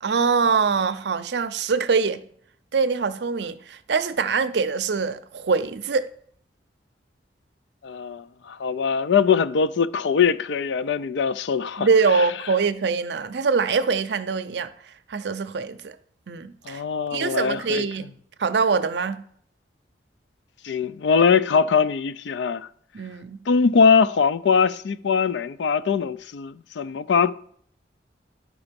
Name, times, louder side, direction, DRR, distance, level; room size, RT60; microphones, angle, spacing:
voice 1, 0.0-2.2 2.7-6.1 11.8-14.7 15.1-16.0 16.3-16.8 17.1-18.1 18.4-19.2 22.9-23.4, right 5 dB, 70° right, 0.5 m, -23 dB
voice 2, 7.8-11.9 16.7-17.8 20.6-22.7 23.5-27.3, left 6 dB, 80° left, 0.4 m, -21 dB
10.5 x 4.9 x 5.1 m
head